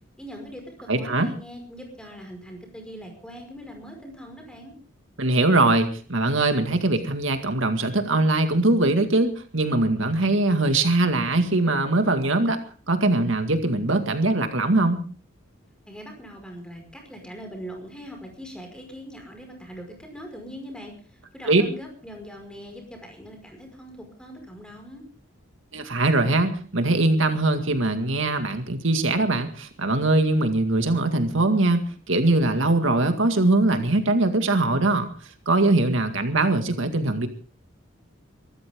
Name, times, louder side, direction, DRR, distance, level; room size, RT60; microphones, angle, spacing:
voice 1, 0.2-4.7 15.9-25.0, equal, 5° left, 3 dB, 5.4 m, -41 dB
voice 2, 0.9-1.3 5.2-12.6 12.9-15.0 21.4-21.6 25.7-35.1 35.5-37.3, right 2 dB, 70° right, 7 dB, 2.0 m, -22 dB
24.5 x 13.5 x 3.7 m, 0.41 s
head